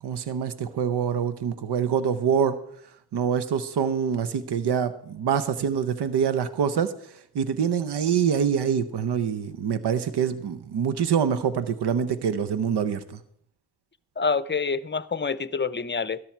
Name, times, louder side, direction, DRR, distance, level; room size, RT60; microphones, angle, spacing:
voice 1, 0.0-2.6 3.1-6.9 7.3-13.2, right 7 dB, 90° right, 13 dB, 0.8 m, -25 dB
voice 2, 14.2-16.2, left 5 dB, 30° left, 17 dB, 0.6 m, -27 dB
13.5 x 12.0 x 4.5 m, 0.66 s
cardioid pair, 60°, 39 cm